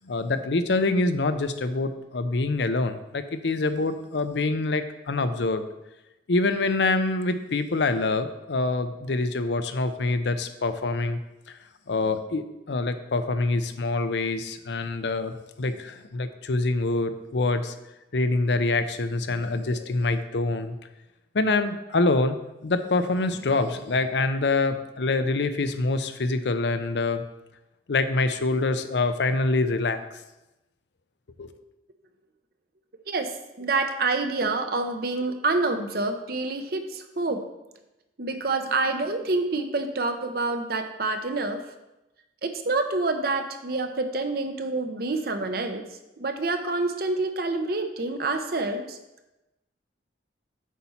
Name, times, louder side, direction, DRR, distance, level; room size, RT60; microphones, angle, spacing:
voice 1, 0.0-5.6 6.3-11.2 11.5-11.6 11.9-17.7 18.1-20.7 21.3-22.4 22.6-27.2 27.9-30.0 31.4-31.5, left 3 dB, 75° left, 10 dB, 0.6 m, -25 dB
voice 2, 33.6-37.4 38.2-41.6 42.4-45.8 46.2-49.0, right 3 dB, 55° right, 6 dB, 0.8 m, -27 dB
8.3 x 4.3 x 5.7 m, 0.97 s
head